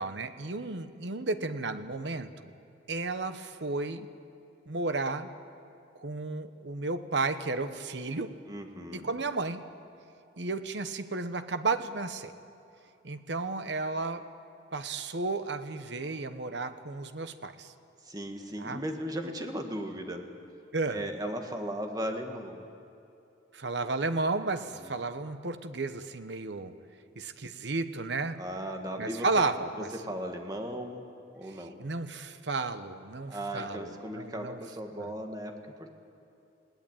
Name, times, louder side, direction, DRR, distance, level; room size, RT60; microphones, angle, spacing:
voice 1, 0.0-2.3 2.9-4.1 4.7-5.3 6.0-8.4 8.9-9.6 10.4-12.3 13.0-14.3 14.7-17.7 18.6-18.8 20.7-21.0 23.5-26.7 27.2-28.4 29.0-29.9 31.8-34.6 35.0-35.1, right 3 dB, 75° right, 10 dB, 1.1 m, -33 dB
voice 2, 8.5-9.1 18.0-20.3 20.9-22.7 24.8-25.0 28.3-29.3 29.9-31.0 31.4-31.8 33.3-35.5 35.8-35.9, equal, 20° right, 4 dB, 1.8 m, -37 dB
21.0 x 17.5 x 9.0 m, 2.8 s
head